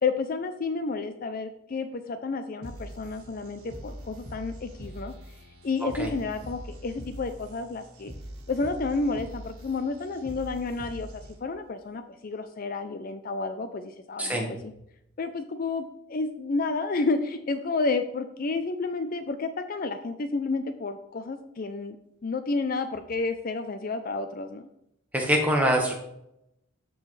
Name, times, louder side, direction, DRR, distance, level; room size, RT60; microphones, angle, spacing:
voice 1, 0.0-5.4 5.6-8.1 8.5-14.7 15.2-22.0 22.2-24.7, left 3 dB, 40° left, 9 dB, 0.4 m, -31 dB
sound 1, 2.6-11.6, equal, 90° right, 1.6 m, -43 dB
voice 2, 14.2-14.5 25.1-25.9, equal, 5° right, 0 dB, 1.3 m, -24 dB
13.0 x 4.7 x 3.2 m, 0.80 s
head